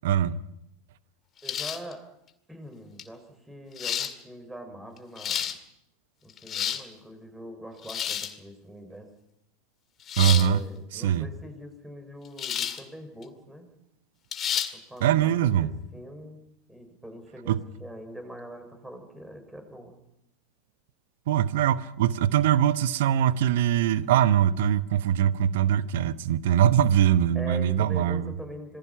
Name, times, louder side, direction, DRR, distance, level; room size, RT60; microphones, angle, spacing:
voice 1, 0.0-0.4 10.2-10.6 10.9-11.3 15.0-15.7 17.5-17.6 21.3-28.3, right 10 dB, 65° right, 1.0 m, -22 dB
sound 1, 1.4-1.9 3.0-3.1 3.8-4.1 5.0-5.6 6.3-6.9 7.8-8.4 10.1-10.5 12.4-12.8 13.2-13.3 14.3-14.7, left 9 dB, 35° left, 2.1 m, -30 dB
voice 2, 1.4-2.1 2.5-5.5 6.2-9.1 10.2-13.7 14.7-16.4 16.7-19.9 27.3-28.8, equal, 5° right, 6.0 m, -43 dB
26.5 x 20.0 x 5.8 m
figure-of-eight pair, 85°, 0 cm